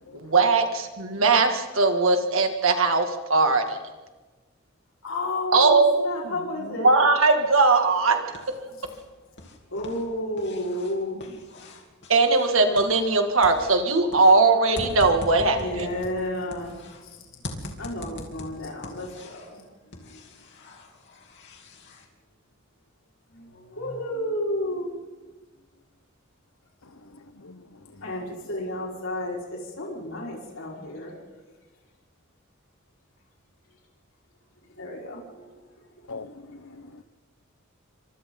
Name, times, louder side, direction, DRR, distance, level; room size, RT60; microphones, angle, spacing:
voice 1, 0.1-3.8 5.5-6.0 6.2-6.3 6.8-8.5 12.1-15.9, right 3 dB, 70° right, 2.4 m, -20 dB
voice 2, 5.0-6.9 8.7-8.8 9.7-11.4 15.5-19.6 19.9-20.2 23.3-24.9 27.8-31.1 34.7-36.1, left 1 dB, 70° left, 5.1 m, -32 dB
sound 1, 7.9-9.0 9.3-13.2 13.4-17.0 17.4-19.5 19.9-22.0, left 1 dB, 55° left, 3.2 m, -41 dB
voice 3, 36.1-37.0, left 3 dB, 90° left, 1.0 m, -42 dB
29.0 x 25.5 x 4.0 m
head